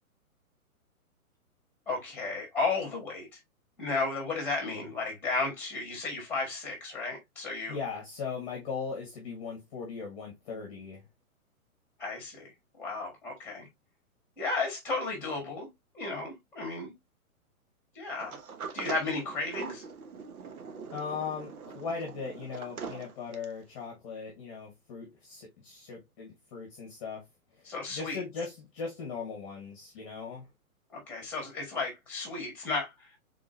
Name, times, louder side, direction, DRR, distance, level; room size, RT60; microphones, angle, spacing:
voice 1, 1.9-3.4 3.8-7.8 12.0-12.5 12.8-13.7 14.4-15.7 15.9-16.9 17.9-18.4 18.7-19.8 27.6-28.2 30.9-33.2, left 3 dB, 5° left, 1.5 m, -33 dB
voice 2, 7.7-11.0 20.9-27.2 27.5-30.5, left 5 dB, 20° left, 1.1 m, -39 dB
Sliding door, 18.2-23.6, right 5 dB, 75° right, 1.0 m, -42 dB
3.6 x 3.6 x 2.6 m
hypercardioid pair, 160°, 44 cm